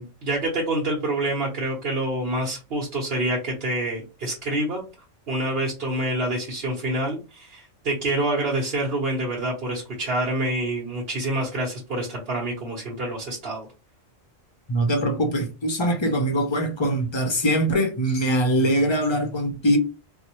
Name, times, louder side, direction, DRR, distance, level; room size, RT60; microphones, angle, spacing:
voice 1, 0.0-4.8 5.3-13.7, right 1 dB, 50° right, 1.1 m, -27 dB
voice 2, 14.7-19.8, equal, 35° left, 0.5 m, -22 dB
4.4 x 2.1 x 2.9 m
omnidirectional pair, 1.3 m